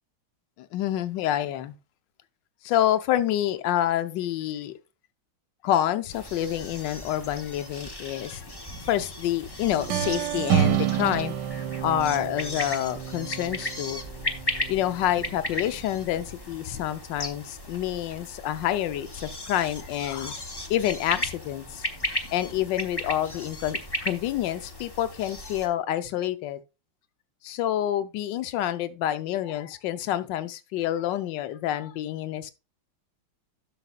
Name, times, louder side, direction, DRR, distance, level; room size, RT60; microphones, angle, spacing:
voice 1, 0.7-1.7 2.6-4.7 5.6-8.5 8.9-11.3 11.8-14.0 14.7-20.4 20.7-21.8 22.3-26.6 27.4-32.5, left 12 dB, 75° left, 1.3 m, -28 dB
sound 1, 6.1-25.7, left 1 dB, 35° left, 0.4 m, -36 dB
sound 2, 9.7-15.4, right 11 dB, 70° right, 1.1 m, -29 dB
11.5 x 6.7 x 2.3 m
omnidirectional pair, 2.1 m